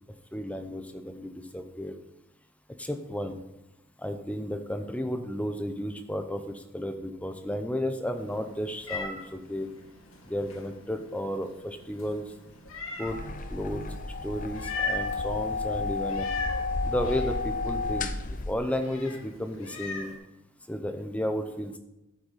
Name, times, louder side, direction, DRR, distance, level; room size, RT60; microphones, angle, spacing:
voice 1, 0.3-1.9 2.8-3.4 4.0-9.7 10.3-12.3 13.0-13.2 13.5-13.8 14.2-16.3 16.8-18.1 18.5-20.1 20.7-21.8, equal, 5° left, 7 dB, 0.8 m, -33 dB
Meow, 8.1-20.2, left 3 dB, 85° left, 2.1 m, -40 dB
sound 1, 13.0-18.5, left 3 dB, 40° left, 0.7 m, -32 dB
12.5 x 8.0 x 4.2 m, 0.93 s
head